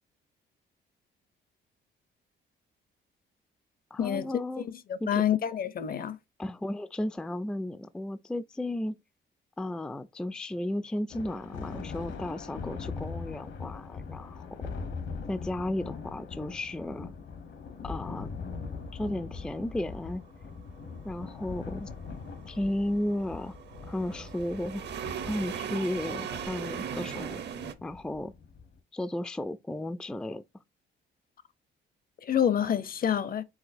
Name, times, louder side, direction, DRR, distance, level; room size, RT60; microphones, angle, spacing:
voice 1, 3.9-4.6 5.0-5.2 6.4-9.0 9.6-14.5 15.3-17.1 17.8-18.3 18.9-20.2 21.0-21.9 22.5-23.6 23.9-24.8 25.3-27.4 27.8-28.3 28.9-30.4, left 1 dB, 5° left, 0.3 m, -34 dB
voice 2, 4.9-6.2 32.2-33.4, left 9 dB, 45° left, 0.6 m, -27 dB
Thunder, 11.1-28.8, left 5 dB, 70° left, 1.0 m, -41 dB
sound 1, 20.8-27.7, right 8 dB, 60° right, 0.7 m, -39 dB
4.9 x 3.8 x 2.6 m
cardioid pair, 90°, 20 cm